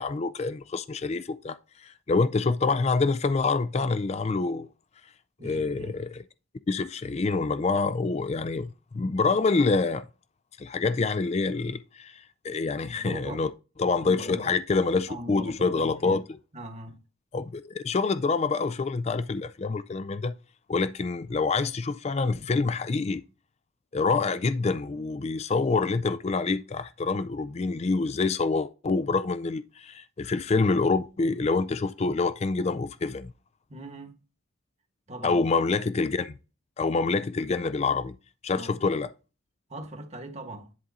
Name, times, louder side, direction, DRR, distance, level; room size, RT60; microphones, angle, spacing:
voice 1, 0.0-4.7 5.4-6.2 6.7-10.1 10.6-13.5 13.8-16.4 17.3-20.4 20.7-23.2 23.9-33.3 35.2-36.3 36.8-38.1 38.4-39.1, left 4 dB, 30° left, 0.4 m, -26 dB
voice 2, 5.4-6.0 12.9-13.4 14.0-14.5 15.1-16.2 16.5-17.0 33.7-34.1 35.1-35.4 38.5-38.8 39.7-40.7, right 1 dB, 35° right, 1.3 m, -40 dB
10.5 x 3.7 x 4.1 m
head